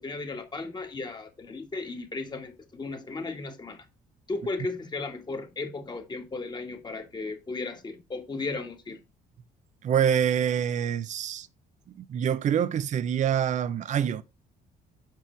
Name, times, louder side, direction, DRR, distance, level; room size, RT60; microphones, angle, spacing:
voice 1, 0.0-3.9 4.3-9.0, left 3 dB, 25° left, 1.7 m, -35 dB
voice 2, 9.8-11.5 12.0-14.2, right 9 dB, 45° right, 0.6 m, -26 dB
7.5 x 5.3 x 4.5 m
cardioid pair, 110°, 17 cm